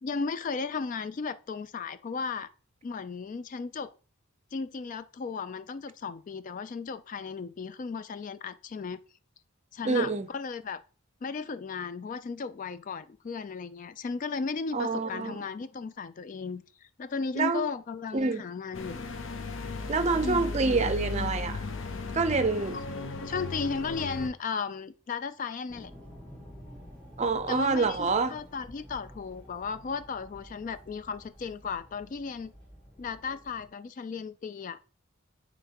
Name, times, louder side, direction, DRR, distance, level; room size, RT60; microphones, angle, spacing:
voice 1, 0.0-2.5 2.8-3.9 4.5-9.0 9.7-10.8 11.2-19.1 20.2-20.6 23.2-25.9 27.5-32.5 33.0-34.9, left 5 dB, 40° left, 0.3 m, -35 dB
voice 2, 9.8-10.3 14.7-15.4 17.4-17.7 18.1-18.4 19.9-21.7 22.1-22.8 27.2-28.4, right 4 dB, 30° right, 0.5 m, -27 dB
sound 1, 18.7-24.3, left 3 dB, 65° left, 0.7 m, -35 dB
sound 2, 25.7-33.7, equal, 10° left, 3.1 m, -50 dB
9.0 x 3.9 x 2.9 m
head